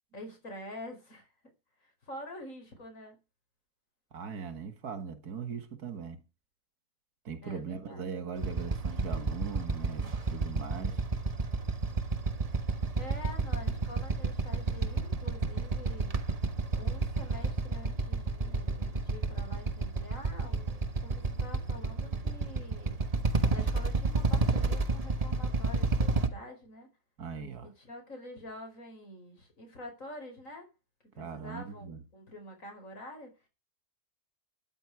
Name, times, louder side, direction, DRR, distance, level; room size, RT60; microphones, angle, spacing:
voice 1, 0.1-1.3 1.8-3.2 7.4-8.1 13.0-16.1 16.7-23.0 23.5-26.9 27.6-30.7 31.1-33.3, left 1 dB, 55° left, 5.2 m, -47 dB
voice 2, 4.1-6.2 7.2-11.0 27.2-27.7 31.2-32.0, right 6 dB, 85° right, 2.3 m, -40 dB
Motorcycle / Idling, 8.4-26.3, right 3 dB, 25° right, 1.2 m, -30 dB
16.0 x 10.0 x 4.8 m
omnidirectional pair, 1.6 m